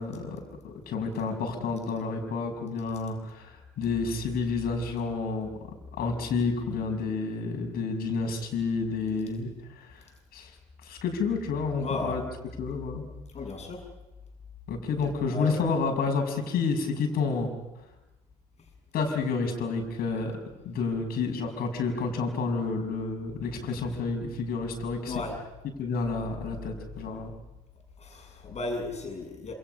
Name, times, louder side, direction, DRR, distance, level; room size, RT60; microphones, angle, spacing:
voice 1, 0.0-5.5 6.0-10.0 10.3-10.5 10.8-12.3 12.6-13.0 14.7-17.5 18.9-20.3 20.6-25.2 25.8-27.3, left 4 dB, 50° left, 4 dB, 6.3 m, -30 dB
voice 2, 11.8-12.1 13.3-13.8 15.3-15.6 25.1-25.3 28.0-29.5, left 2 dB, 35° left, 3 dB, 8.0 m, -34 dB
28.5 x 27.5 x 5.6 m, 1.0 s
figure-of-eight pair, 60°, 20 cm